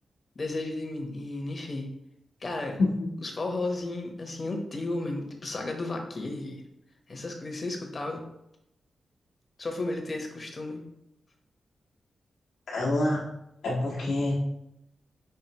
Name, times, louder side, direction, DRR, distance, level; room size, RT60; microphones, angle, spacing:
voice 1, 0.4-1.9 2.4-2.8 3.2-6.6 7.1-8.2 9.6-10.8, left 2 dB, 50° left, 3 dB, 1.0 m, -33 dB
voice 2, 12.7-13.2 13.6-14.3, left 2 dB, 85° left, -6 dB, 1.1 m, -26 dB
5.6 x 2.8 x 2.9 m, 0.82 s
cardioid pair, 50°, 0 cm